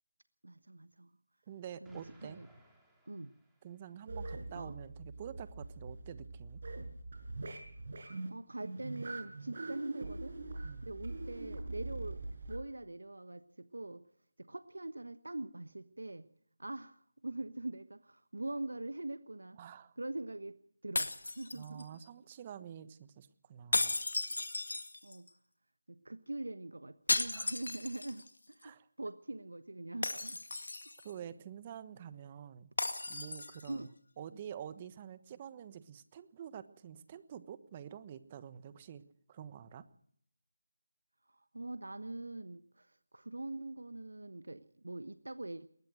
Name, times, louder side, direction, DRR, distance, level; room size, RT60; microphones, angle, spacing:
voice 1, 0.4-1.1 1.8-2.5 3.1-3.3 4.5-4.7 8.3-10.4 10.8-14.1 14.4-16.3 16.6-19.6 20.0-20.6 20.8-21.9 25.0-25.3 25.9-30.4 33.7-33.9 41.3-45.7, right 2 dB, 80° right, 12 dB, 1.2 m, -43 dB
voice 2, 1.5-2.4 3.6-6.6 10.6-10.9 19.5-19.9 21.5-24.0 27.3-27.5 28.6-28.9 31.0-32.7 33.1-33.9 34.2-39.0 39.3-39.8, right 9 dB, 25° right, 14 dB, 1.2 m, -48 dB
Explosion, 1.8-4.0, right 1 dB, 5° right, 3.3 m, -61 dB
sound 1, 4.1-12.6, right 2 dB, 50° right, 6.3 m, -43 dB
sound 2, 20.9-22.0 23.7-25.3 27.1-28.3 28.6-28.7 30.0-31.1 32.8-33.7, left 2 dB, 70° left, 2.2 m, -35 dB
21.5 x 19.5 x 6.3 m, 0.64 s
figure-of-eight pair, 165°, 0 cm